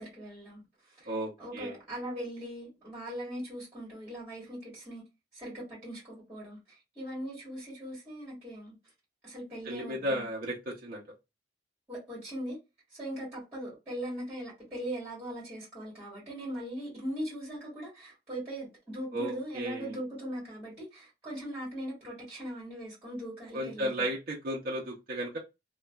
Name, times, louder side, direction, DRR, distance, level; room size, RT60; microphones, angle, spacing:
voice 1, 0.0-1.1 1.4-5.0 5.3-8.8 9.2-10.3 11.9-12.6 12.9-24.1, right 1 dB, 10° right, 1.7 m, -40 dB
voice 2, 1.1-1.8 9.6-11.0 19.1-19.9 23.5-25.4, right 1 dB, 55° right, 0.7 m, -34 dB
3.0 x 2.3 x 2.2 m
head